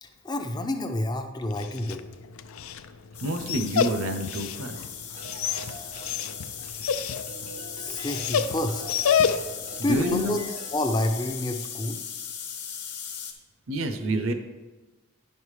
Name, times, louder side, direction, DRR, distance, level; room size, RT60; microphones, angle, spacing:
voice 1, 0.0-2.1 7.7-8.8 9.8-10.4 10.7-12.0, left 1 dB, 20° left, 6 dB, 0.5 m, -29 dB
Dog, 1.4-9.7, left 7 dB, 80° left, 0.4 m, -29 dB
sound 1, 3.1-13.3, left 8 dB, 50° left, 1.1 m, -38 dB
voice 2, 3.2-4.9 9.1-9.3 9.8-10.4 13.7-14.3, right 1 dB, 75° right, 7 dB, 0.7 m, -28 dB
sound 2, 5.2-6.9 7.3-11.2, right 2 dB, 30° right, 0.5 m, -44 dB
10.0 x 5.4 x 3.2 m, 1.2 s
head